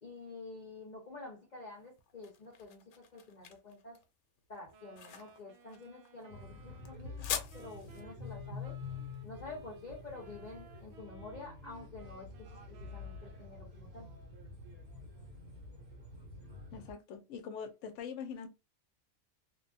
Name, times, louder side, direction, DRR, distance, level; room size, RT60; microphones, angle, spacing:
voice 1, 0.0-4.0 4.5-8.8 9.2-14.1, left 3 dB, 45° left, 0.6 m, -49 dB
sound 1, 1.7-10.8, left 8 dB, 85° left, 1.1 m, -45 dB
Wind instrument woodwind instrument, 4.7-13.8, right 3 dB, 65° right, 0.8 m, -59 dB
sound 2, 6.3-16.9, left 4 dB, 90° right, 1.4 m, -48 dB
voice 2, 16.7-18.5, left 6 dB, 65° left, 0.9 m, -43 dB
2.9 x 2.2 x 2.6 m
omnidirectional pair, 1.5 m